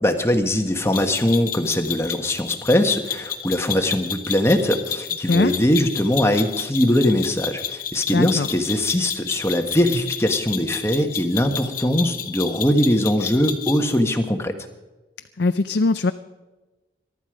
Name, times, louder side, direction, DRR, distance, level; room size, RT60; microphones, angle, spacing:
voice 1, 0.0-14.6, left 1 dB, 15° left, 5 dB, 1.4 m, -21 dB
sound 1, 0.9-14.0, left 8 dB, 50° left, 1.4 m, -31 dB
voice 2, 8.1-8.5 15.4-16.1, left 3 dB, 65° left, 10 dB, 0.5 m, -20 dB
23.0 x 12.0 x 5.0 m, 1.2 s
head